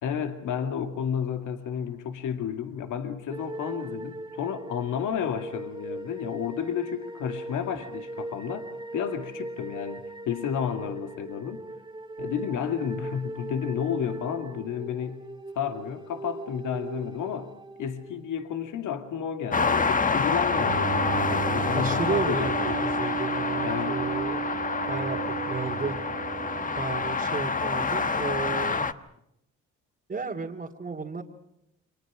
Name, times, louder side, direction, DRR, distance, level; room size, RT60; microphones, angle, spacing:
voice 1, 0.0-11.6 12.2-15.2 15.6-17.5 17.8-23.0 23.6-24.0, left 8 dB, 85° left, 6 dB, 2.2 m, -31 dB
sound 1, 3.3-18.4, right 2 dB, 15° right, 2.0 m, -40 dB
sound 2, 19.5-28.9, left 4 dB, 25° left, 1.2 m, -27 dB
Bowed string instrument, 20.5-27.7, right 7 dB, 75° right, 3.3 m, -34 dB
voice 2, 21.7-24.4 24.9-26.0 26.8-28.9 30.1-31.2, right 4 dB, 30° right, -1 dB, 2.5 m, -33 dB
29.5 x 24.5 x 6.1 m, 0.80 s
cardioid pair, 90°, 30 cm